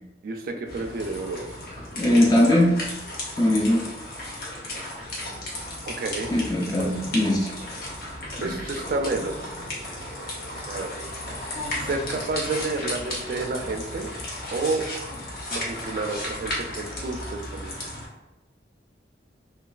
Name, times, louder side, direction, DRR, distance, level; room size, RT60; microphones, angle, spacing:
voice 1, 0.2-1.5 5.9-6.5 6.7-7.0 8.4-9.5 10.7-10.9 11.8-14.1 14.5-14.9 15.5-17.8, right 3 dB, 55° right, 4 dB, 0.3 m, -30 dB
sound 1, 0.7-18.1, left 1 dB, 55° left, 0.7 m, -34 dB
voice 2, 2.0-2.7 3.4-3.8 6.3-7.5 8.4-8.5, left 1 dB, 20° left, -1 dB, 0.4 m, -20 dB
3.0 x 2.2 x 2.4 m, 1.0 s
head